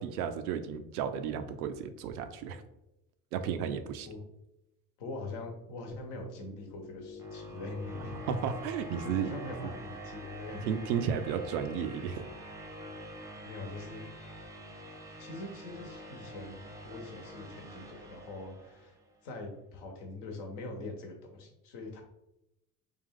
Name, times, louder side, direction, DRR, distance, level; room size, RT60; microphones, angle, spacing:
voice 1, 0.0-2.6 3.3-4.1 8.3-9.3 10.7-12.3, right 7 dB, 75° right, 9 dB, 0.5 m, -33 dB
voice 2, 5.0-8.2 9.0-10.7 13.5-14.1 15.2-19.0 19.2-22.0, left 2 dB, 60° left, 3 dB, 1.0 m, -43 dB
sound 1, 6.1-19.1, equal, 5° right, 0.7 m, -46 dB
3.5 x 2.3 x 3.6 m, 0.88 s
hypercardioid pair, 60°, 46 cm